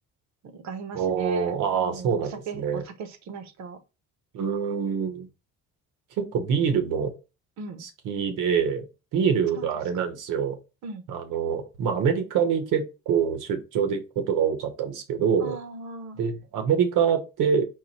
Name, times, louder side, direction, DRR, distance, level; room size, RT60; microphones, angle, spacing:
voice 1, 0.4-3.8 7.6-7.8 9.6-9.7 10.8-11.0 15.4-16.2, right 4 dB, 65° right, 0.9 m, -38 dB
voice 2, 0.9-2.8 4.3-5.3 6.2-7.1 7.8-8.8 9.1-10.6 11.1-15.6 16.2-17.7, right 7 dB, 85° right, 1.1 m, -25 dB
4.7 x 2.2 x 4.2 m
cardioid pair, 145°, 31 cm